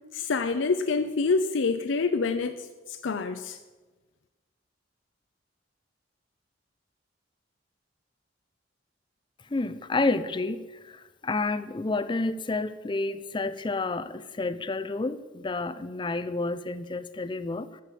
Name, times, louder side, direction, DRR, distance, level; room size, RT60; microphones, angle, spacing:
voice 1, 0.1-3.6, left 4 dB, 85° left, 0.5 m, -27 dB
voice 2, 9.5-17.8, left 3 dB, 25° left, 0.5 m, -30 dB
13.5 x 5.0 x 8.5 m
head